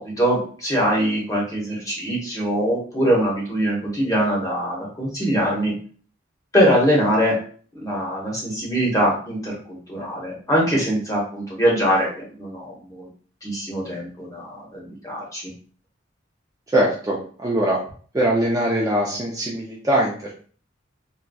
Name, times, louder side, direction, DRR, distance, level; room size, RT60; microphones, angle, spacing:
voice 1, 0.0-5.7 6.5-7.4 7.7-13.1 13.4-15.5, equal, 15° left, -4 dB, 1.0 m, -22 dB
voice 2, 16.7-17.8 18.1-20.3, right 1 dB, 15° right, -3 dB, 0.4 m, -22 dB
3.9 x 2.2 x 2.2 m, 0.44 s
head